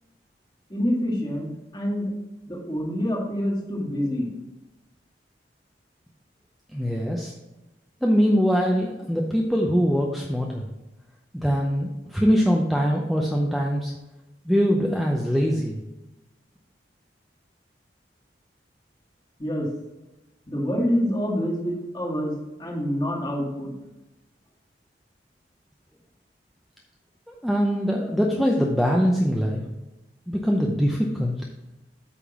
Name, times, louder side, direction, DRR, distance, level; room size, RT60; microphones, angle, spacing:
voice 1, 0.7-2.1 2.5-4.3 19.4-19.7 20.5-22.3 22.6-23.8, equal, 25° left, -3 dB, 2.0 m, -26 dB
voice 2, 6.7-7.3 8.0-10.7 11.3-13.9 14.5-15.8 27.3-29.6 30.3-31.4, equal, ahead, -1 dB, 0.6 m, -23 dB
8.4 x 3.7 x 6.0 m, 1.0 s
head